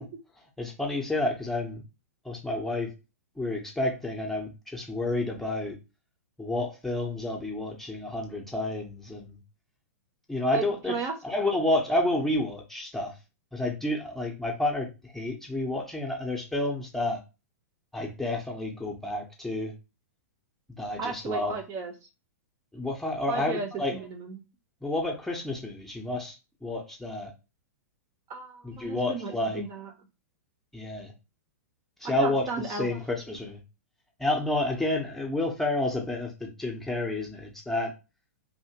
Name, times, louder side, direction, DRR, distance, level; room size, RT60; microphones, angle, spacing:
voice 1, 0.6-1.8 2.2-2.9 3.4-5.8 6.4-9.3 10.3-11.0 11.2-13.1 13.5-17.2 17.9-19.7 20.8-21.5 22.7-24.0 24.8-26.4 26.6-27.3 28.6-29.6 30.7-31.1 32.0-33.6 34.2-37.9, left 2 dB, 5° left, 0 dB, 0.8 m, -30 dB
voice 2, 10.5-11.1 21.0-21.9 23.3-24.4 28.3-29.9 32.0-32.9, right 4 dB, 30° right, 5 dB, 0.8 m, -35 dB
2.8 x 2.8 x 2.8 m, 0.28 s
hypercardioid pair, 115°, 9 cm